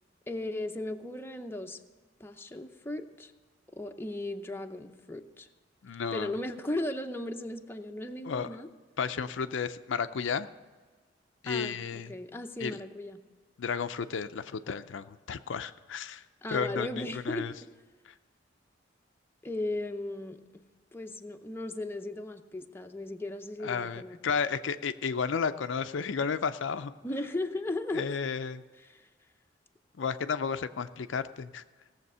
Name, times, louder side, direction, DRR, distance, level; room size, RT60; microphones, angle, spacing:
voice 1, 0.3-1.8 2.2-3.3 3.7-5.5 6.1-8.7 11.4-13.2 16.4-17.5 19.4-20.6 20.9-24.2 27.0-28.1 28.8-29.1, left 1 dB, 10° left, 5 dB, 0.6 m, -36 dB
voice 2, 5.8-6.3 8.3-8.6 9.0-10.5 11.4-12.1 12.6-12.8 13.6-16.2 16.5-17.5 23.6-26.9 27.9-28.6 30.0-31.6, left 6 dB, 75° left, 10 dB, 0.5 m, -32 dB
18.0 x 7.3 x 5.5 m, 1.4 s
head